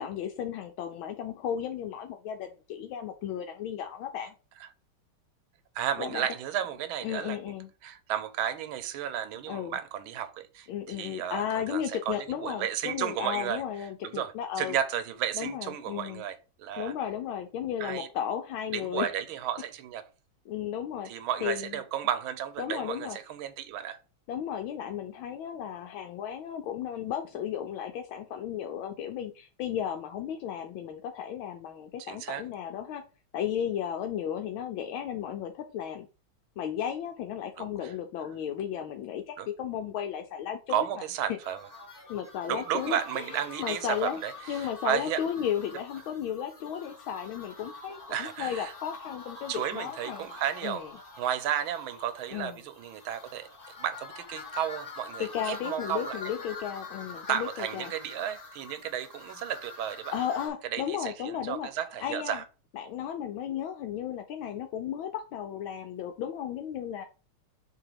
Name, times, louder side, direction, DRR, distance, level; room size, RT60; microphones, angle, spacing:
voice 1, 0.0-4.3 6.0-6.3 7.0-7.7 9.5-9.8 10.7-14.8 15.3-16.2 16.8-19.1 20.5-21.1 21.4-21.8 22.6-23.2 24.3-33.0 33.3-36.1 36.6-41.0 41.3-41.4 42.1-44.2 44.5-50.3 50.6-50.9 52.3-52.6 55.2-57.9 60.1-61.7 62.0-62.4 62.7-67.1, left 9 dB, 80° left, 1.5 m, -34 dB
voice 2, 5.7-7.4 7.8-13.6 14.0-16.9 17.8-18.1 18.7-20.0 21.0-24.0 32.0-32.4 37.6-37.9 39.4-39.5 40.7-41.6 42.5-45.2 48.1-48.7 49.5-50.8 51.2-53.5 53.8-56.2 57.3-60.1 60.7-62.4, right 10 dB, 85° right, 1.5 m, -33 dB
sound 1, 41.4-60.5, left 3 dB, 30° left, 1.4 m, -45 dB
6.9 x 2.9 x 4.9 m
omnidirectional pair, 2.2 m